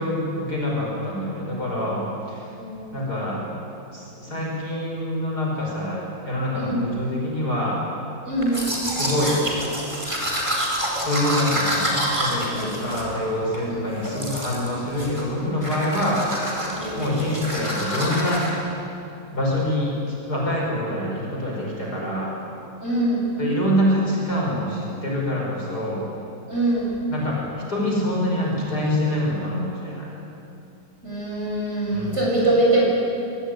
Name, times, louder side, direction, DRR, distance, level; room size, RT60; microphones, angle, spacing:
voice 1, 0.0-2.5 2.9-3.5 3.9-7.8 8.8-9.4 11.0-16.5 17.0-18.7 19.3-22.4 23.4-26.1 27.1-27.4 27.7-30.1 31.9-32.2, left 1 dB, 55° left, -3 dB, 6.3 m, -25 dB
voice 2, 2.5-3.0 6.5-6.8 8.2-8.6 12.5-12.8 13.7-13.9 16.8-17.0 22.8-23.2 26.5-26.9 31.0-32.8, right 1 dB, 35° right, -4 dB, 8.1 m, -23 dB
Domestic sounds home sounds, 8.4-13.6 14.0-14.7 15.0-15.3 15.6-18.5, equal, 15° right, 4.9 m, -27 dB
26.0 x 22.0 x 9.6 m, 2.7 s
omnidirectional pair, 2.0 m